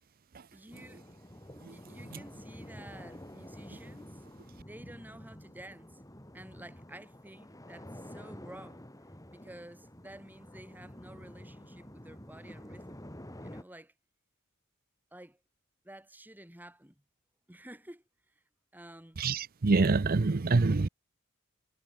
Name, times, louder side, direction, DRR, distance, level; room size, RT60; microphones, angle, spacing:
voice 1, 0.5-1.0 1.7-4.2 4.6-6.0 6.3-8.9 9.3-13.1 13.4-13.9 15.1-15.4 15.8-17.0 17.5-18.3 18.7-19.2, right 1 dB, 10° right, 2.9 m, -51 dB
sound 1, 0.7-13.6, equal, 15° left, 4.4 m, -49 dB
voice 2, 19.2-20.9, right 3 dB, 40° right, 0.6 m, -26 dB
head